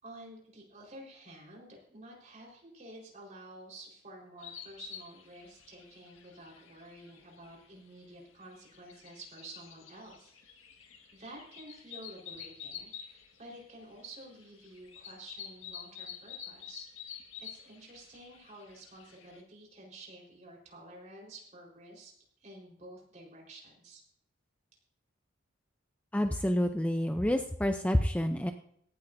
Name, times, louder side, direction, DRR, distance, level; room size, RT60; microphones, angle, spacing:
voice 1, 0.0-10.5 11.1-22.1 22.4-24.0, right 1 dB, 35° right, -2 dB, 4.4 m, -51 dB
sound 1, 4.4-19.4, left 8 dB, 85° left, 1.7 m, -49 dB
voice 2, 26.1-28.5, equal, 5° left, 6 dB, 0.5 m, -28 dB
17.5 x 13.0 x 2.7 m, 0.69 s
head